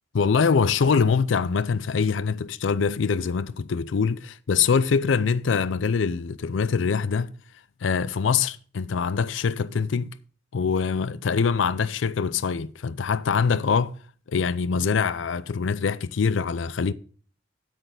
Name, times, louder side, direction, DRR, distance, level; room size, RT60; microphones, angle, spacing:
voice 1, 0.1-7.3 7.8-10.1 10.5-14.0 14.3-16.9, left 5 dB, 85° left, 0.5 m, -24 dB
9.0 x 8.7 x 3.8 m
head